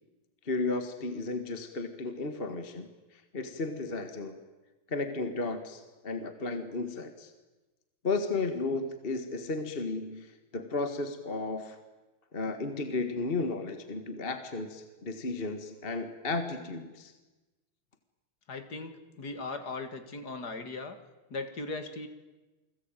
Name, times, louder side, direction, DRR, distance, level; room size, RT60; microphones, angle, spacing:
voice 1, 0.4-4.4 4.9-7.3 8.0-11.8 12.3-17.1, left 3 dB, 30° left, 8 dB, 1.7 m, -34 dB
voice 2, 18.5-21.0 21.3-22.1, left 3 dB, 50° left, 8 dB, 2.5 m, -38 dB
29.0 x 20.5 x 9.1 m, 1.2 s
omnidirectional pair, 2.4 m